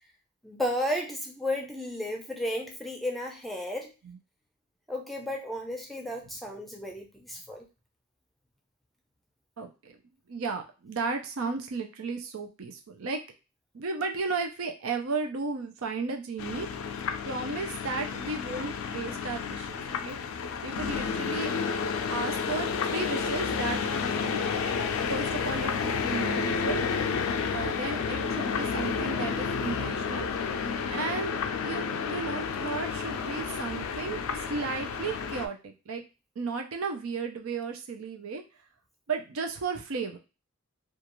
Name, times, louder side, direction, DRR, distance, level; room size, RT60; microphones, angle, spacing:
voice 1, 0.4-3.9 4.9-7.7, left 1 dB, ahead, 1 dB, 0.5 m, -33 dB
voice 2, 9.6-10.0 10.3-13.2 13.7-16.7 17.3-20.2 20.6-21.5 22.1-24.4 25.1-26.8 27.5-30.3 30.9-31.4 31.6-35.6 35.9-36.0 36.4-38.4 39.1-40.2, right 4 dB, 85° right, 4 dB, 0.5 m, -34 dB
sound 1, 16.4-35.5, left 5 dB, 80° left, 0.4 m, -31 dB
2.4 x 2.3 x 2.9 m, 0.30 s
head